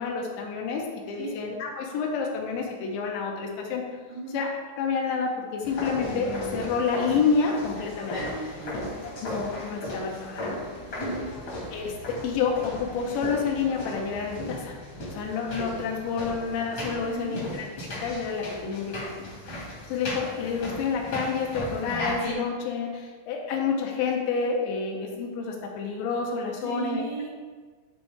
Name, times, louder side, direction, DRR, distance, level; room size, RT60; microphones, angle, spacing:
voice 1, 0.0-3.8 4.3-4.5 4.8-8.2 9.2-10.6 11.7-14.8 15.1-17.7 18.0-27.0, left 5 dB, 80° left, 1 dB, 2.9 m, -29 dB
sound 1, 5.6-22.3, left 1 dB, 50° left, 1.6 m, -36 dB
voice 2, 8.2-8.8 10.9-11.3 17.1-17.4 26.6-27.3, right 3 dB, 75° right, -3 dB, 3.6 m, -35 dB
11.0 x 4.0 x 3.5 m, 1.5 s
omnidirectional pair, 5.4 m